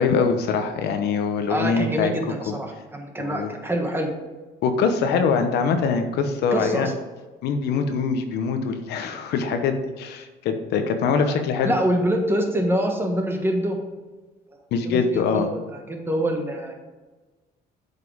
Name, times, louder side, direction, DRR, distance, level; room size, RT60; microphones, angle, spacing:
voice 1, 0.0-2.1 2.5-2.6 3.2-3.5 4.6-6.9 7.4-11.7 14.7-15.5, left 5 dB, 80° left, 6 dB, 1.0 m, -23 dB
voice 2, 1.5-4.1 6.5-6.9 11.6-13.8 14.8-15.6 15.9-16.7, equal, 15° right, 2 dB, 1.4 m, -25 dB
8.0 x 5.5 x 5.1 m, 1.2 s
cardioid pair, 110°, 17 cm